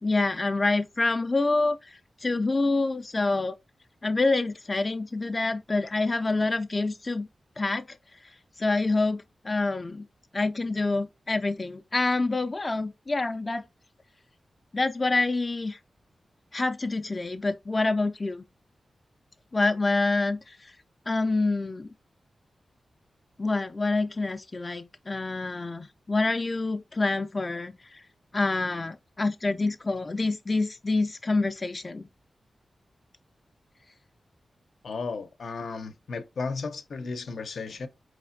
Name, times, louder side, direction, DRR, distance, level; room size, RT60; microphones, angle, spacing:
voice 1, 0.0-3.5 4.0-7.3 7.6-7.8 8.2-8.3 8.6-10.1 10.3-13.6 14.7-15.8 16.5-18.4 19.5-20.7 21.1-21.9 23.4-28.0 28.3-32.1, left 3 dB, 30° left, 0.3 m, -27 dB
voice 2, 34.8-37.9, left 4 dB, 75° left, 0.6 m, -34 dB
4.9 x 3.2 x 2.6 m
wide cardioid pair, 125°, 0 cm